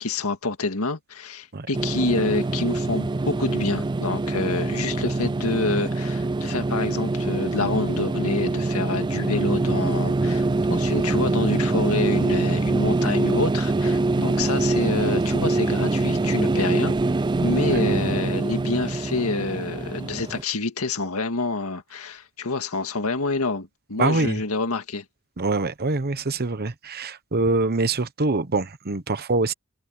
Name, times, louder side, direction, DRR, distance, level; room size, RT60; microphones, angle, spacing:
voice 1, 0.0-16.9 17.4-25.0, left 3 dB, 90° left, 2.0 m, -27 dB
sound 1, 1.7-20.4, right 2 dB, 20° right, 0.4 m, -24 dB
voice 2, 24.0-24.4 25.4-29.5, right 3 dB, 45° right, 1.1 m, -24 dB
head